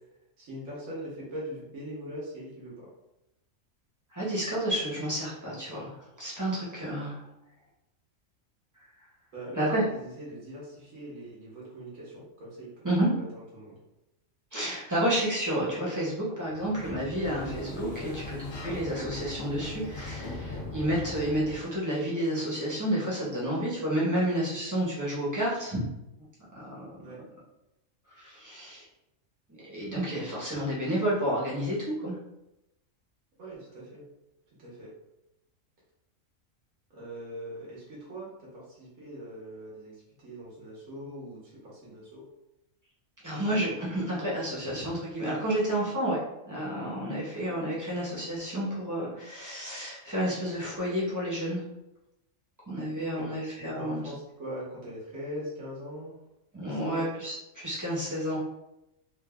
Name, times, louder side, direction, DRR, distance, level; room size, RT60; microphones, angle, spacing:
voice 1, 0.4-2.9 9.3-13.8 18.0-18.2 27.0-27.2 33.4-34.0 34.6-34.9 36.9-42.3 43.3-43.6 52.9-53.2 53.5-56.1 56.7-57.1, equal, 80° right, -6 dB, 1.4 m, -41 dB
voice 2, 4.1-5.9 6.2-7.2 9.6-9.8 12.8-13.1 14.5-25.8 26.5-26.9 28.2-28.8 29.6-32.2 43.2-51.6 52.7-54.0 56.5-58.4, right 1 dB, 15° right, -7 dB, 0.8 m, -30 dB
Sliding door, 16.4-21.8, left 2 dB, 70° left, 1.2 m, -39 dB
3.7 x 2.5 x 2.3 m, 0.89 s
omnidirectional pair, 1.4 m